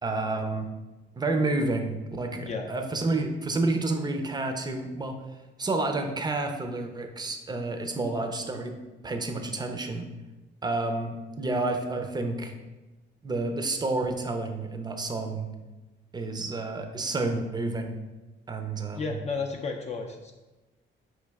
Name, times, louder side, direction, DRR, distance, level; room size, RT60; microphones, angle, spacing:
voice 1, 0.0-0.7 1.1-5.2 5.6-8.8 9.0-10.1 10.6-12.6 13.2-15.5 16.1-18.0 18.5-19.2, right 2 dB, 20° right, 5 dB, 0.5 m, -30 dB
voice 2, 19.0-20.3, left 4 dB, 35° left, 2 dB, 0.4 m, -32 dB
4.5 x 3.1 x 3.5 m, 1.1 s
cardioid pair, 90°, 20 cm